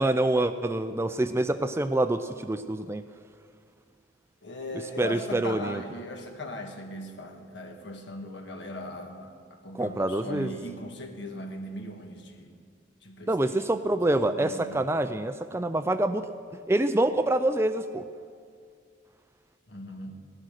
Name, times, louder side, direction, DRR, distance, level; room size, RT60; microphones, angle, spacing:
voice 1, 0.0-3.0 5.0-5.8 9.7-10.5 13.3-16.3 16.7-18.0, right 1 dB, 15° right, 10 dB, 0.4 m, -26 dB
voice 2, 4.4-12.6 13.0-13.8 14.1-14.8 19.7-20.2, left 1 dB, 65° left, 4 dB, 1.6 m, -39 dB
17.0 x 11.5 x 6.5 m, 2.2 s
head